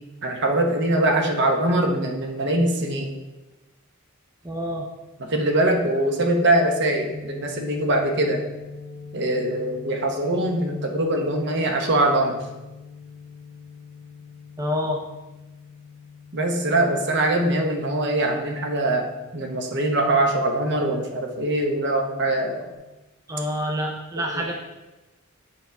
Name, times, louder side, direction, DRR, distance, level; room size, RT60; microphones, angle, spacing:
voice 1, 0.2-3.1 5.2-8.4 9.1-12.4 16.3-22.7 24.3-24.4, right 1 dB, 55° right, 3 dB, 1.0 m, -22 dB
voice 2, 4.4-4.9 14.6-15.0 23.3-24.5, equal, 15° right, 1 dB, 0.5 m, -27 dB
sound 1, 7.1-22.7, left 5 dB, 55° left, 1.8 m, -44 dB
8.2 x 5.4 x 3.4 m, 1.1 s
head